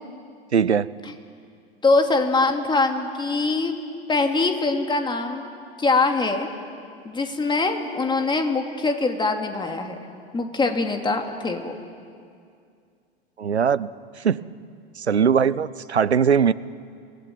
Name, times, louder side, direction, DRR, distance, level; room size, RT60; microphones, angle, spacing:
voice 1, 0.5-0.9 13.4-13.9 14.2-14.4 15.0-16.5, right 7 dB, 85° right, 19 dB, 0.7 m, -20 dB
voice 2, 1.8-3.8 4.1-5.5 5.8-6.5 7.0-10.0 10.3-11.8, left 3 dB, 15° left, 5 dB, 2.7 m, -23 dB
27.0 x 19.5 x 9.3 m, 2.3 s
figure-of-eight pair, 85°, 32 cm